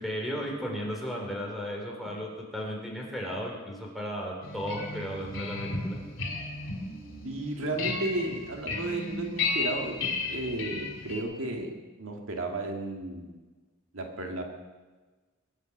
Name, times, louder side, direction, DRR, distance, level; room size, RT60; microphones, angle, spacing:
voice 1, 0.0-6.0, equal, ahead, -1 dB, 3.8 m, -35 dB
sound 1, 4.4-11.2, left 3 dB, 70° left, 3.6 m, -34 dB
voice 2, 7.2-11.7 12.0-13.4 13.9-14.4, right 2 dB, 85° right, 3 dB, 2.0 m, -33 dB
21.0 x 8.2 x 7.3 m, 1.3 s
head